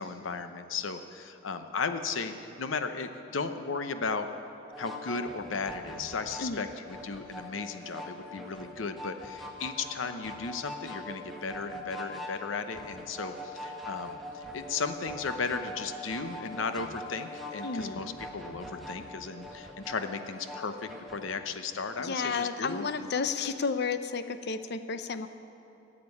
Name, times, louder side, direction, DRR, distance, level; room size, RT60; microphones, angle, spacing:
voice 1, 0.0-4.3 4.8-6.7 7.0-20.7 21.1-23.1, left 4 dB, 85° left, 9 dB, 0.8 m, -35 dB
sound 1, 4.7-21.3, left 1 dB, ahead, 1.3 m, -43 dB
voice 2, 17.6-18.2 22.0-25.3, left 5 dB, 60° left, 10 dB, 0.7 m, -32 dB
13.5 x 7.6 x 9.6 m, 2.8 s
head